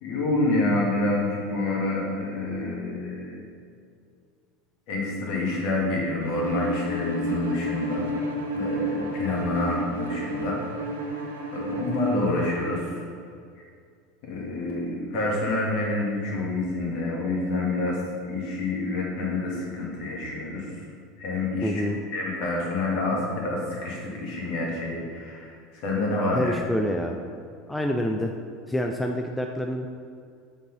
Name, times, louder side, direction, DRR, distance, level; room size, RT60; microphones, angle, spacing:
voice 1, 0.0-3.4 4.9-8.1 8.5-10.6 11.5-12.8 14.2-18.0 18.2-20.7 21.2-21.8 22.1-25.6 25.8-26.5, left 2 dB, 50° left, -3 dB, 1.6 m, -27 dB
Bowed string instrument, 6.3-12.9, right 1 dB, 75° right, 0.7 m, -31 dB
voice 2, 21.6-22.0 26.3-27.2 27.7-28.3 28.7-29.9, equal, 5° left, 3 dB, 0.4 m, -27 dB
7.3 x 3.9 x 3.9 m, 2.3 s
figure-of-eight pair, 75°, 0 cm